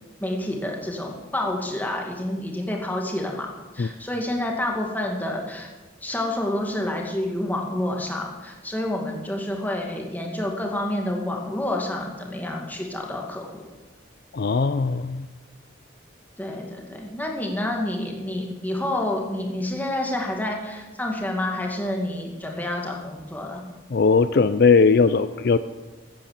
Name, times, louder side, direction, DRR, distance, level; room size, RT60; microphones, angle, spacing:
voice 1, 0.2-3.5 3.7-5.7 6.0-13.6 16.4-23.6, left 1 dB, 10° left, 0 dB, 2.2 m, -28 dB
voice 2, 14.3-15.3 23.9-25.6, left 4 dB, 55° left, 13 dB, 0.4 m, -19 dB
14.5 x 9.8 x 7.5 m, 1.2 s
head